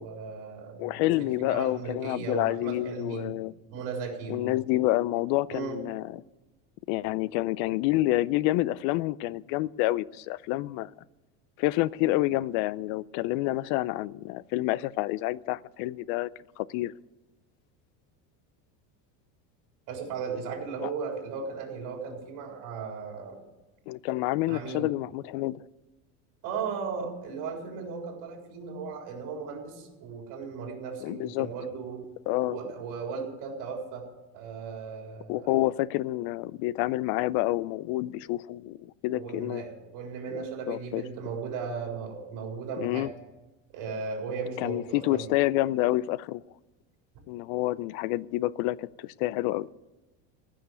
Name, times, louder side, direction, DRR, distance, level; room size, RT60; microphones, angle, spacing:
voice 1, 0.0-3.4 3.7-4.6 5.5-5.8 19.9-23.4 24.5-24.9 26.4-32.0 32.5-34.1 34.3-35.5 39.1-43.1 43.7-45.3, right 5 dB, 55° right, 1 dB, 4.2 m, -36 dB
voice 2, 0.8-3.5 4.3-6.2 6.9-10.9 11.6-16.3 16.6-16.9 20.8-20.9 23.9-25.6 31.0-31.5 32.3-32.6 35.3-39.6 40.3-41.0 42.8-43.1 44.6-46.4 47.3-49.7, left 17 dB, 60° left, 21 dB, 0.5 m, -28 dB
15.0 x 6.5 x 9.4 m, 1.1 s
supercardioid pair, 145°, 38 cm